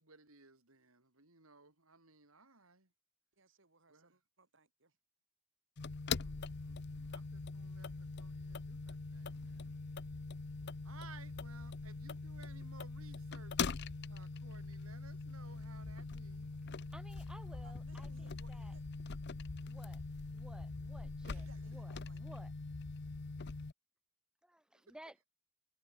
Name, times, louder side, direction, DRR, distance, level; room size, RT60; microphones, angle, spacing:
voice 1, 0.0-2.9 3.9-4.2 6.1-9.8 10.8-13.8 14.1-16.5 18.0-18.5 21.2-21.8 24.7-25.0, right 4 dB, 85° right, 4.7 m, -60 dB
voice 2, 3.4-5.0 17.6-18.9 21.0-22.2, right 3 dB, 60° right, 4.3 m, -66 dB
sound 1, 5.8-23.7, left 4 dB, 55° left, 0.7 m, -43 dB
voice 3, 16.9-18.8 19.7-20.0 20.3-22.5 24.4-25.2, right 1 dB, 5° right, 1.3 m, -57 dB
head